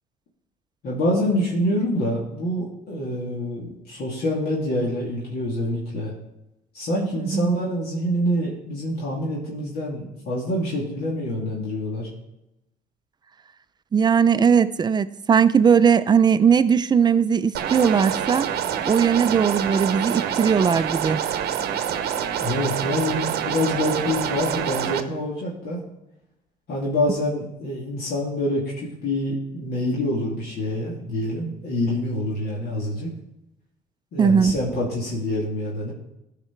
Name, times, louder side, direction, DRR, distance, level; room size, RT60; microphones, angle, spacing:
voice 1, 0.8-6.1 6.7-12.1 22.4-25.8 26.7-33.1 34.1-35.9, left 1 dB, 65° left, 2.5 m, -26 dB
voice 2, 7.2-7.5 13.9-18.5 18.9-21.2 34.2-34.6, right 7 dB, 25° right, 0.4 m, -19 dB
sound 1, 17.5-25.0, right 9 dB, 70° right, 0.8 m, -26 dB
14.0 x 5.0 x 4.6 m
cardioid pair, 110°, 17 cm